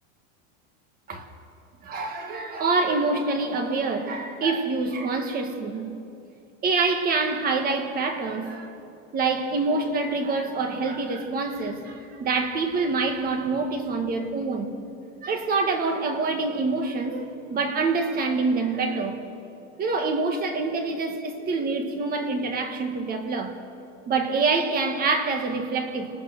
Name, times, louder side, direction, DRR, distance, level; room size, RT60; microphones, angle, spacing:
voice 1, 1.8-5.9 6.6-8.9 9.1-14.7 15.2-19.2 19.8-23.6 24.1-26.2, right 3 dB, 25° right, 1.7 m, -26 dB
30.0 x 19.0 x 6.5 m
supercardioid pair, 170°, 36 cm